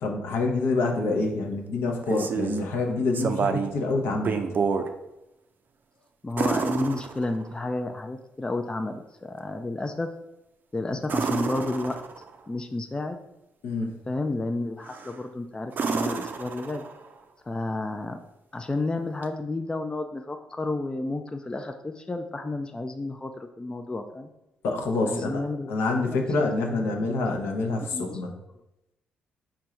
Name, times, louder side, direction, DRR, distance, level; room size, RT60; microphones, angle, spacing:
voice 1, 0.0-4.4 13.6-13.9 24.6-25.4 25.7-28.3, left 3 dB, 65° left, 2 dB, 0.8 m, -26 dB
sound 1, 1.8-2.7 3.1-3.8 4.1-4.9 6.4-7.6 11.0-12.4 14.8-15.2 15.7-17.1 19.2-19.3, right 5 dB, 45° right, 0.5 m, -29 dB
voice 2, 6.2-10.1 10.7-12.0 12.5-13.2 14.1-16.8 17.5-18.2 18.5-24.3 25.0-26.5 26.8-27.1 27.9-28.2, left 2 dB, 20° left, 6 dB, 0.4 m, -31 dB
4.5 x 2.5 x 4.3 m, 0.92 s
hypercardioid pair, 45°, 4 cm